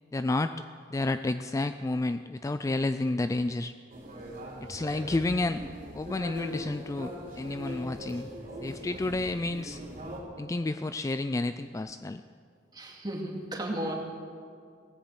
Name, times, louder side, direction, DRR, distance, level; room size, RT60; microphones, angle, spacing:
voice 1, 0.1-0.6 0.9-3.7 4.6-5.6 5.9-8.3 8.6-9.8 10.4-12.2, left 2 dB, 15° left, 10 dB, 0.3 m, -30 dB
sound 1, 3.9-10.2, equal, 45° right, 3.4 m, -41 dB
voice 2, 12.7-13.9, right 1 dB, 25° right, 0 dB, 2.3 m, -34 dB
17.5 x 10.0 x 8.0 m, 2.2 s
head